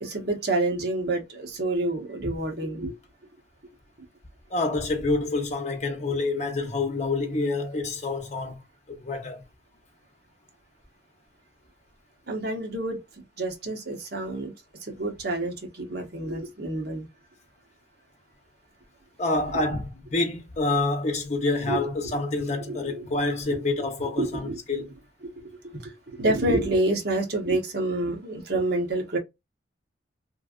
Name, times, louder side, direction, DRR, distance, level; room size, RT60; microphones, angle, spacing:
voice 1, 0.0-2.9 12.3-13.0 13.4-14.5 14.8-17.1 21.7-21.8 22.7-23.1 24.2-24.6 25.3-29.2, right 2 dB, 60° right, 1.0 m, -28 dB
voice 2, 4.5-9.4 19.2-24.9, left 2 dB, 40° left, 0.8 m, -27 dB
3.2 x 2.5 x 2.3 m
head